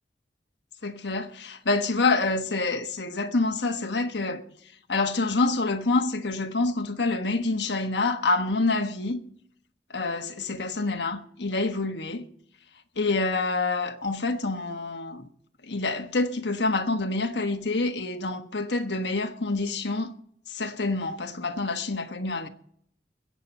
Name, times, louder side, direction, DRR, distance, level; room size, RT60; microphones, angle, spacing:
voice 1, 0.8-4.4 4.9-9.2 9.9-12.2 13.0-15.3 15.6-20.1 20.5-22.5, left 3 dB, 80° left, 1.3 m, -27 dB
22.0 x 8.7 x 4.3 m
head